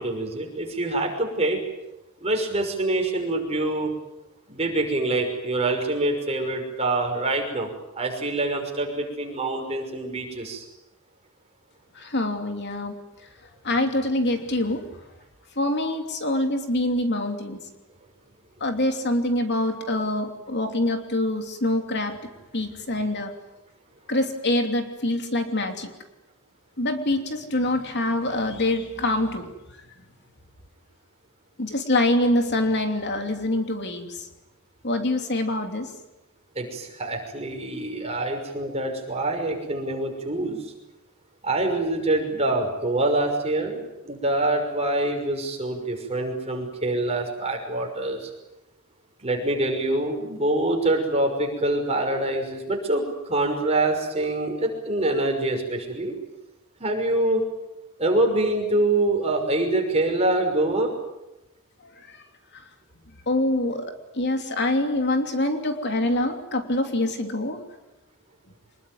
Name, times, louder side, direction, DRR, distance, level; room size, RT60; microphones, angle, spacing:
voice 1, 0.0-1.6 2.2-3.9 4.5-7.7 8.0-10.6 36.6-40.6 41.4-43.8 44.0-48.3 49.2-53.0 53.3-56.1 56.8-57.4 58.0-60.9, right 2 dB, 30° right, 3 dB, 5.9 m, -25 dB
voice 2, 11.9-12.9 13.6-14.8 15.6-17.6 18.6-22.2 22.5-23.3 24.1-25.9 26.8-29.5 31.6-34.3 34.8-35.9 62.1-62.2 63.3-67.6, left 1 dB, 50° left, 5 dB, 3.0 m, -25 dB
25.5 x 21.5 x 9.5 m, 0.96 s
head